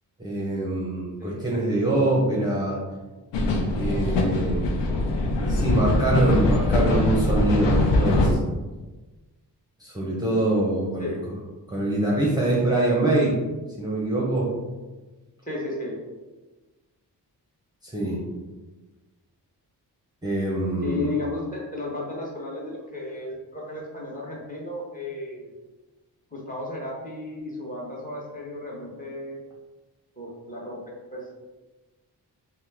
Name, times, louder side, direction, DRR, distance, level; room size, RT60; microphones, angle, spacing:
voice 1, 0.2-2.8 3.7-4.7 5.4-8.3 9.8-11.1 11.7-13.4 13.8-14.5 17.9-18.2 20.2-21.1, right 2 dB, 10° right, -6 dB, 0.8 m, -24 dB
sound 1, 3.3-8.3, left 2 dB, 85° left, 0.5 m, -22 dB
voice 2, 15.4-15.9 20.8-25.5 26.3-29.4 30.2-30.8 31.1-31.2, left 2 dB, 20° left, -5 dB, 1.2 m, -33 dB
2.8 x 2.2 x 3.4 m, 1.2 s
cardioid pair, 55°, 41 cm